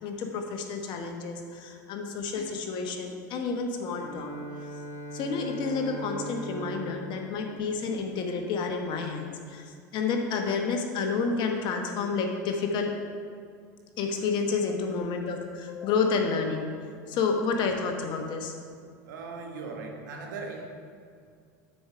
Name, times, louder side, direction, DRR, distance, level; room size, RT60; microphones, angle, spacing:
voice 1, 0.0-4.3 5.1-12.9 14.0-16.7 17.1-18.5, left 4 dB, 50° left, 3 dB, 1.1 m, -30 dB
Bowed string instrument, 3.8-8.8, right 1 dB, 50° right, 2.1 m, -41 dB
voice 2, 19.0-20.7, right 4 dB, 85° right, 2 dB, 1.3 m, -38 dB
7.7 x 4.7 x 5.6 m, 2.2 s
supercardioid pair, 110°, 10 cm